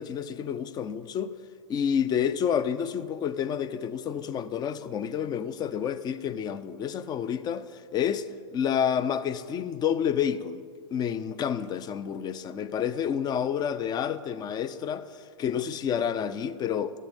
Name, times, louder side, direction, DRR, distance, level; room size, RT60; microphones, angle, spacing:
voice 1, 0.0-1.3 1.7-8.3 8.5-10.6 10.9-17.0, left 8 dB, 25° left, 0.5 m, -29 dB
12.5 x 7.4 x 5.2 m
hypercardioid pair, 110°, 15 cm